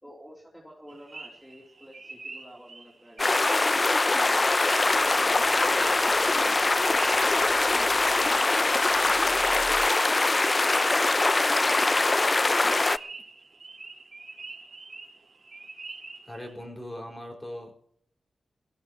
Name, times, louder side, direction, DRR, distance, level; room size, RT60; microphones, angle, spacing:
voice 1, 0.0-3.4 3.9-7.0 7.6-10.3 10.7-12.8, equal, ahead, -3 dB, 3.3 m, -50 dB
sound 1, 0.9-16.5, right 3 dB, 40° right, 4.4 m, -44 dB
sound 2, 3.2-13.0, left 2 dB, 30° left, 0.5 m, -23 dB
sound 3, 4.8-9.9, right 3 dB, 60° right, 3.3 m, -48 dB
voice 2, 16.2-17.8, left 1 dB, 15° left, 2 dB, 5.2 m, -39 dB
22.0 x 17.0 x 3.0 m, 0.65 s
wide cardioid pair, 90°, 0 cm